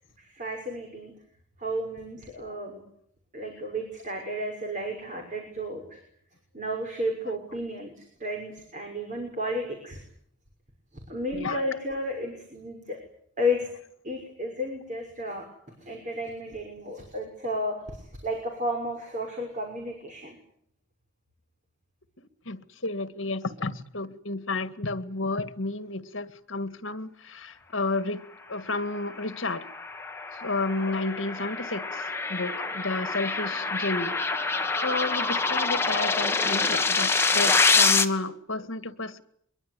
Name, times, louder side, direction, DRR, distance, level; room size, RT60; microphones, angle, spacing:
voice 1, 0.2-1.1 1.6-2.8 3.3-6.0 6.5-10.0 11.1-13.0 13.4-13.7 14.0-15.4 15.8-20.4 30.5-30.6, equal, 35° right, 6.0 m, -32 dB
voice 2, 22.5-28.2 28.5-29.6 30.4-32.0 32.3-34.1 34.8-39.2, left 2 dB, 70° left, 1.9 m, -31 dB
sound 1, 29.2-38.0, left 4 dB, 10° left, 1.6 m, -26 dB
24.0 x 23.0 x 9.8 m
head